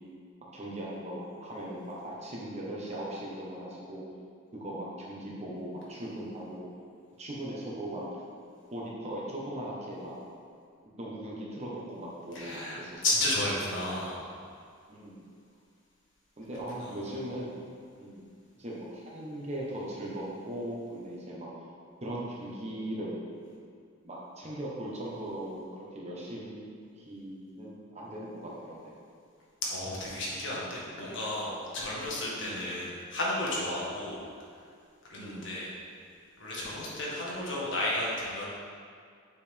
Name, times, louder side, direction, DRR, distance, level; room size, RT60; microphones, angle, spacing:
voice 1, 0.5-4.0 4.5-6.7 7.2-8.0 8.7-10.1 10.9-13.0 14.9-15.2 16.4-17.6 18.0-18.2 18.6-21.5 22.0-23.2 24.0-28.9 31.0-31.1 31.9-32.0 32.4-32.7 35.2-35.5, right 1 dB, 35° right, -5 dB, 1.2 m, -39 dB
voice 2, 12.3-14.2 16.8-17.0 29.6-34.2 35.1-35.7 36.4-38.5, left 1 dB, 65° left, -5 dB, 1.5 m, -33 dB
6.7 x 5.2 x 3.6 m, 2.2 s
head